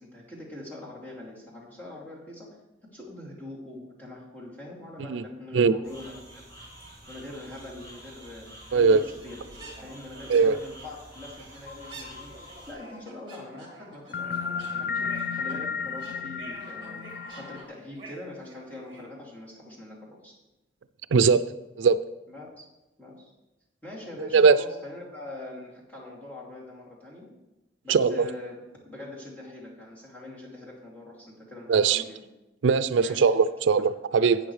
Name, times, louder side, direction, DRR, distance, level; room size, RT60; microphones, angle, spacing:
voice 1, 0.0-2.5 2.9-6.5 7.1-9.4 9.8-17.0 17.4-20.3 22.3-22.6 23.0-23.3 23.8-27.3 27.8-28.5 28.8-32.2 33.0-33.2 34.2-34.3, left 2 dB, 10° left, -6 dB, 2.7 m, -43 dB
sound 1, 5.8-12.7, right 1 dB, 30° left, 3.1 m, -48 dB
sound 2, 7.5-7.8 8.5-8.6 8.8-8.9 9.2-19.1, right 2 dB, 25° right, 2.5 m, -48 dB
sound 3, 11.7-13.0 14.1-17.6, left 6 dB, 50° left, 0.3 m, -33 dB
voice 2, 21.1-21.4 21.8-22.0 24.3-24.6 27.9-28.3 31.7-32.0 32.6-34.4, right 5 dB, 90° right, 15 dB, 0.4 m, -20 dB
12.0 x 8.6 x 3.3 m, 0.99 s
head